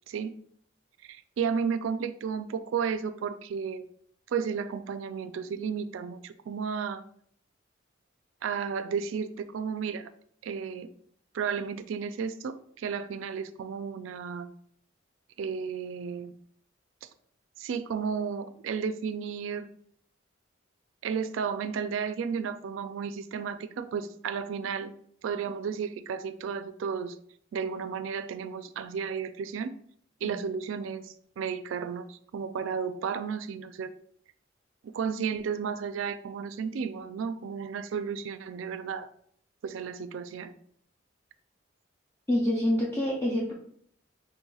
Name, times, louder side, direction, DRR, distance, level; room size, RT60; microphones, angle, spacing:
voice 1, 1.0-3.8 4.3-7.0 8.4-10.1 10.4-10.9 11.3-14.5 15.4-16.3 17.0-17.1 17.6-19.7 21.0-24.9 25.2-27.2 27.5-29.7 30.2-33.9 34.8-39.1 39.6-40.5, right 6 dB, 90° right, 12 dB, 0.3 m, -33 dB
voice 2, 42.3-43.5, left 1 dB, 10° left, -5 dB, 0.5 m, -26 dB
5.4 x 3.2 x 2.3 m, 0.63 s
head